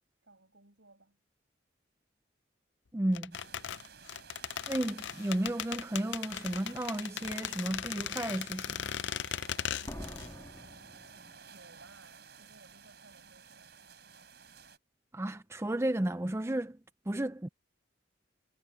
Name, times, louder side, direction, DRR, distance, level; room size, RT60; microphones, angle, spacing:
voice 1, 0.2-1.2 9.8-13.7, right 2 dB, 80° right, 6.5 m, -60 dB
voice 2, 2.9-3.4 4.7-8.8 15.1-16.8 17.1-17.5, right 1 dB, 15° right, 0.5 m, -33 dB
sound 1, 3.1-10.3 10.6-10.7, left 9 dB, 70° left, 0.5 m, -38 dB
sound 2, 3.3-14.8, right 6 dB, 55° right, 7.3 m, -53 dB
Slam, 7.5-7.8 9.9-11.8 12.0-12.1, equal, 15° left, 1.9 m, -47 dB
head